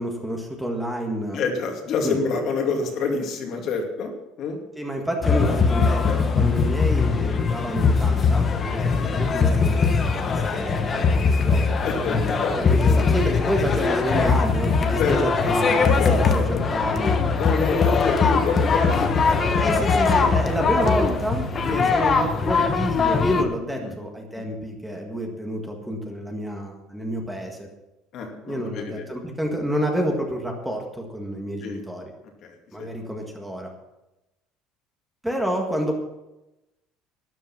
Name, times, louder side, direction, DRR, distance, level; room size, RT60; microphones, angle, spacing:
voice 1, 0.0-1.4 2.0-2.2 4.8-15.2 15.4-17.2 19.6-27.7 28.4-32.0 32.7-33.7 35.2-35.9, right 1 dB, 5° right, 1 dB, 1.7 m, -29 dB
voice 2, 1.3-4.6 5.7-6.3 8.9-9.2 11.8-12.7 15.0-15.2 15.8-16.6 17.4-20.0 21.6-21.9 23.7-23.9 24.3-24.5 28.1-29.1 31.6-31.9 32.4-32.9, left 4 dB, 45° left, 2 dB, 2.5 m, -28 dB
sound 1, 5.2-23.4, left 5 dB, 25° left, 1.2 m, -21 dB
12.5 x 11.0 x 5.9 m, 0.97 s
cardioid pair, 160°, 0 cm